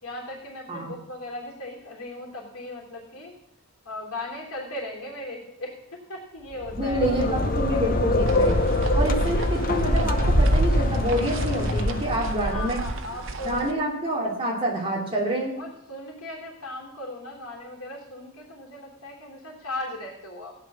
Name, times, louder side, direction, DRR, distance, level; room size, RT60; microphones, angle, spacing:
voice 1, 0.0-3.3 3.8-7.0 12.5-13.8 15.6-20.5, left 1 dB, 85° left, -1 dB, 3.2 m, -37 dB
sound 1, 6.5-12.5, left 2 dB, 40° left, 0.9 m, -25 dB
voice 2, 6.7-8.6 8.9-12.8 13.4-15.5, right 1 dB, 25° right, -2 dB, 3.0 m, -27 dB
sound 2, 8.3-13.7, right 1 dB, 60° right, 1.1 m, -27 dB
15.5 x 9.6 x 6.3 m, 0.81 s
head